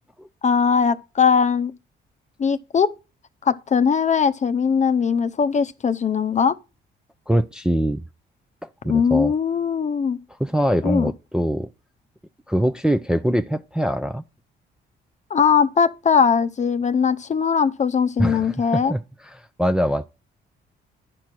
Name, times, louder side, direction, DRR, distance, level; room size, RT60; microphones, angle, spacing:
voice 1, 0.4-1.7 2.4-2.9 3.4-6.5 8.9-10.2 10.8-11.1 15.3-18.9, left 6 dB, 35° left, 0.7 m, -20 dB
voice 2, 7.3-8.0 8.8-9.3 10.4-11.7 12.5-14.2 18.2-19.0 19.6-20.1, equal, 5° right, 0.5 m, -22 dB
10.5 x 4.4 x 6.1 m
cardioid pair, 90°, 20 cm